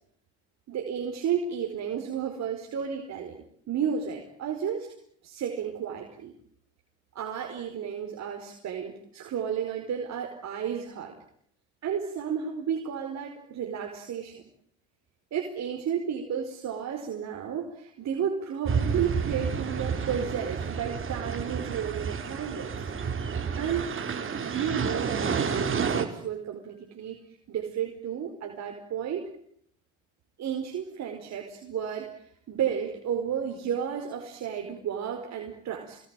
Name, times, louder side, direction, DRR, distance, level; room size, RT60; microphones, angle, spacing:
voice 1, 0.7-4.9 5.2-6.3 7.1-11.2 11.8-14.4 15.3-22.9 23.6-23.9 24.4-27.2 27.5-29.3 30.4-36.0, right 8 dB, 55° right, 3 dB, 4.7 m, -32 dB
sound 1, 18.7-26.1, right 6 dB, 40° right, 4.8 m, -30 dB
26.5 x 21.0 x 9.1 m, 0.67 s
hypercardioid pair, 65°, 32 cm